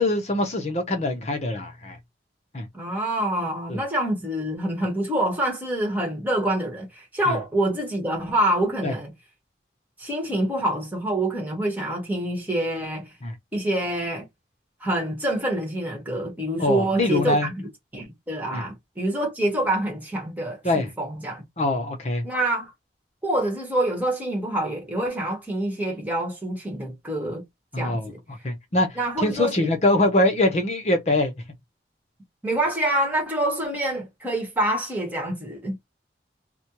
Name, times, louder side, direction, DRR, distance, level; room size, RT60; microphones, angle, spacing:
voice 1, 0.0-2.0 2.5-2.7 3.7-3.8 7.3-7.4 8.8-8.9 13.2-13.3 16.6-17.5 18.5-18.6 20.6-20.9 21.6-22.2 27.7-28.1 28.4-31.3, left 2 dB, 40° left, 0.7 m, -23 dB
voice 2, 2.7-9.1 10.0-13.0 13.5-14.2 14.8-17.5 17.9-21.4 22.2-22.7 23.2-27.4 27.8-28.2 29.0-29.7 32.4-35.8, right 1 dB, 10° right, 1.3 m, -26 dB
4.2 x 2.2 x 3.0 m
head